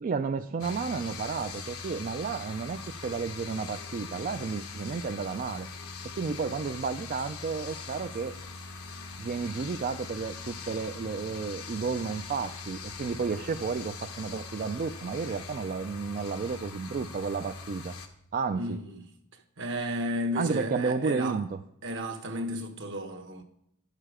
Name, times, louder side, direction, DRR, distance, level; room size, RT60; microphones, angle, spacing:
voice 1, 0.0-5.7 6.2-8.3 9.2-18.0 18.3-18.8 20.4-21.6, right 5 dB, 40° right, 0.3 m, -32 dB
sound 1, 0.6-18.1, left 4 dB, 90° left, 1.1 m, -42 dB
voice 2, 18.5-19.0 19.6-21.4 21.8-23.4, equal, 60° right, 1.2 m, -33 dB
11.0 x 6.7 x 5.0 m
head